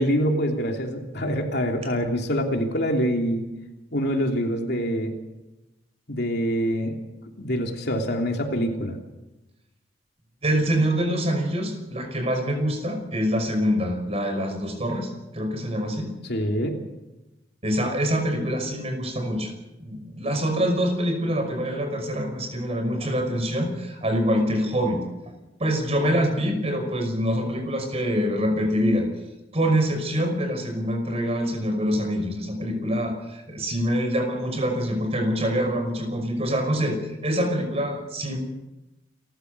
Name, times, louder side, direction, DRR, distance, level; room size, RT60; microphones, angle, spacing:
voice 1, 0.0-3.4 3.9-5.1 6.1-6.9 7.4-9.0 16.3-16.8, equal, 60° left, 2 dB, 3.2 m, -25 dB
voice 2, 10.4-16.1 17.6-19.5 19.8-25.0 25.6-29.1 29.5-38.4, equal, 35° right, 5 dB, 5.6 m, -25 dB
29.0 x 14.5 x 6.8 m, 0.99 s
head